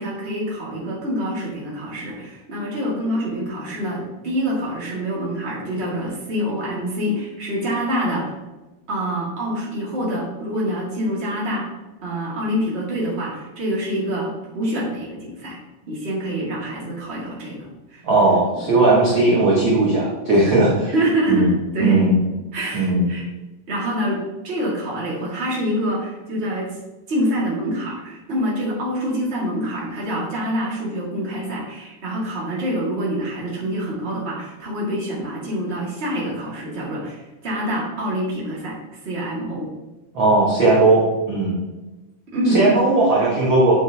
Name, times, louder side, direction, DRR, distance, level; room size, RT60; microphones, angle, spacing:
voice 1, 0.0-8.3 8.9-11.7 12.0-15.6 15.9-18.0 20.9-21.4 21.7-22.1 22.5-23.2 23.7-26.7 27.1-38.8 39.0-39.7 42.3-42.6, equal, 25° right, -5 dB, 1.5 m, -26 dB
voice 2, 18.0-20.9 21.3-21.5 21.8-22.2 22.7-23.1 40.1-41.5 42.5-43.7, right 2 dB, 55° right, -6 dB, 1.4 m, -17 dB
8.0 x 5.9 x 2.8 m, 1.1 s
omnidirectional pair, 3.8 m